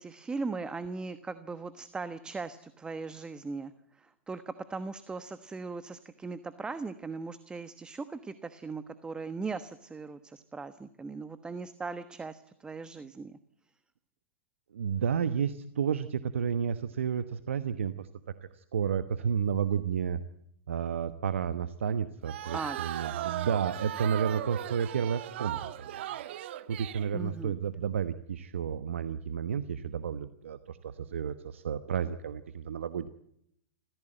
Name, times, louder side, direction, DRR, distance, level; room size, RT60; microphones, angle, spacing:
voice 1, 0.0-13.4 22.5-22.8 27.1-27.6, right 4 dB, 15° right, 12 dB, 1.2 m, -39 dB
voice 2, 14.7-18.1 18.5-20.2 20.7-26.2 26.7-33.1, right 7 dB, 80° right, 12 dB, 1.2 m, -31 dB
sound 1, 22.2-27.1, right 13 dB, 65° right, 1.3 m, -37 dB
26.5 x 15.5 x 9.1 m, 0.75 s
hypercardioid pair, 115°, 7 cm